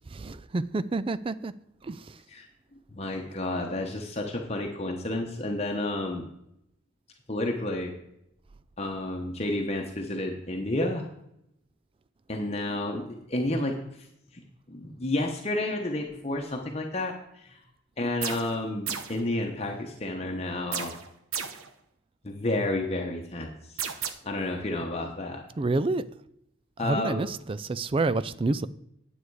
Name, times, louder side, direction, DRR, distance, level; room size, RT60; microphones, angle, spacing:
voice 1, 0.1-1.5 1.9-2.0 25.6-26.0 26.8-28.7, right 3 dB, 25° right, 16 dB, 0.3 m, -28 dB
voice 2, 2.9-6.2 7.3-7.9 8.8-11.1 12.3-13.8 14.3-14.4 14.7-17.6 18.0-21.0 22.2-23.9 24.2-25.4 26.8-27.2, left 1 dB, 30° left, 1 dB, 1.0 m, -31 dB
sound 1, 18.2-18.6 18.9-19.2 20.7-21.7 23.8-24.1, right 8 dB, 85° right, 0.9 m, -33 dB
9.6 x 8.0 x 4.7 m, 0.78 s
head